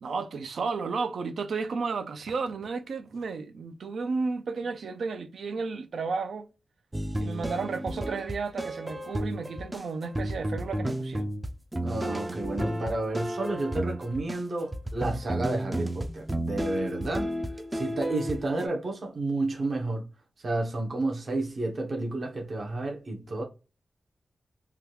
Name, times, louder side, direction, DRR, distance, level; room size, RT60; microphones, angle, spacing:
voice 1, 0.0-6.5 7.2-11.3, right 4 dB, 80° right, 0.5 m, -33 dB
sound 1, 6.9-18.7, right 1 dB, 15° right, 0.4 m, -32 dB
voice 2, 11.8-17.3 17.7-20.1 20.4-23.4, right 2 dB, 50° right, 0.9 m, -31 dB
3.5 x 2.3 x 2.8 m
wide cardioid pair, 155°, 0 cm